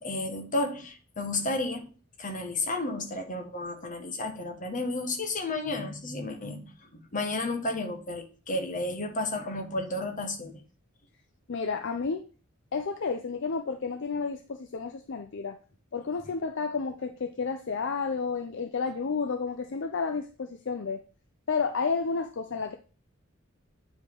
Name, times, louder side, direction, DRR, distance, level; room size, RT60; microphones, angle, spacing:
voice 1, 0.0-1.9 2.2-10.6, left 2 dB, 40° left, 1.4 m, -32 dB
voice 2, 11.5-12.2 12.7-15.6 15.9-21.0 21.5-22.8, left 5 dB, 60° left, 0.6 m, -31 dB
9.1 x 5.0 x 3.8 m
head